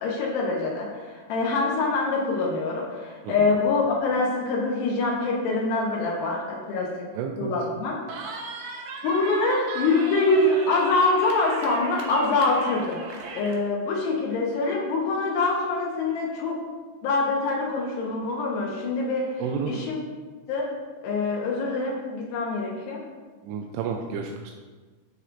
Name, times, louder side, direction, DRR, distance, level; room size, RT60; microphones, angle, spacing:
voice 1, 0.0-7.1 7.4-8.0 9.0-13.0 13.3-16.6 17.0-19.3 19.7-20.0 20.5-20.7 21.0-23.0, left 3 dB, 80° left, -3 dB, 3.0 m, -25 dB
voice 2, 7.1-7.5 19.4-19.8 23.4-24.5, right 6 dB, 85° right, 2 dB, 2.7 m, -31 dB
Cheering, 8.1-13.6, right 4 dB, 70° right, 2.4 m, -37 dB
12.5 x 6.5 x 2.5 m, 1.4 s
omnidirectional pair, 4.8 m